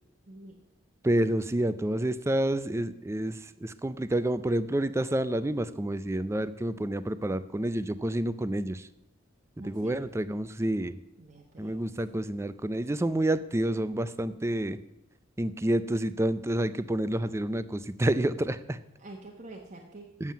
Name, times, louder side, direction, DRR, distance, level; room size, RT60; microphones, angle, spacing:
voice 1, 0.3-0.6 9.6-10.1 11.2-11.8 19.0-20.3, right 2 dB, 40° right, -1 dB, 1.1 m, -47 dB
voice 2, 1.0-8.9 9.6-11.0 11.6-14.8 15.4-18.8 20.2-20.3, right 1 dB, 15° right, 14 dB, 0.4 m, -29 dB
7.5 x 7.3 x 8.2 m, 0.87 s
head